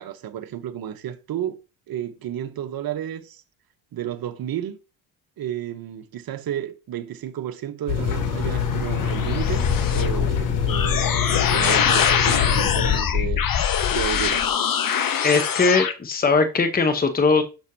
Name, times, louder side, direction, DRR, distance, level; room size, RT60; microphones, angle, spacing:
voice 1, 0.0-1.6 1.9-3.4 3.9-4.8 5.4-11.2 11.5-14.5, right 10 dB, 45° right, 1.0 m, -32 dB
sound 1, 7.9-13.0, left 7 dB, 70° left, 2.0 m, -25 dB
sound 2, 8.2-15.9, left 8 dB, 45° left, 1.0 m, -23 dB
voice 2, 15.2-17.4, left 4 dB, 20° left, 1.0 m, -20 dB
6.4 x 6.2 x 2.8 m
hypercardioid pair, 70°, 48 cm